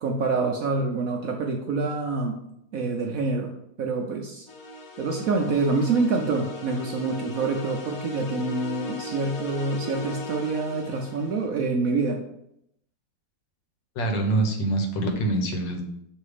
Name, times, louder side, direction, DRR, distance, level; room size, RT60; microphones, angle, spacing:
voice 1, 0.0-2.4 2.7-3.5 3.8-4.5 5.0-12.2, right 3 dB, 65° right, 2 dB, 0.8 m, -26 dB
sound 1, 4.5-11.5, equal, 55° left, 1.3 m, -38 dB
voice 2, 13.9-15.8, right 2 dB, 75° left, 3 dB, 1.7 m, -25 dB
6.4 x 3.3 x 4.9 m, 0.77 s
omnidirectional pair, 2.0 m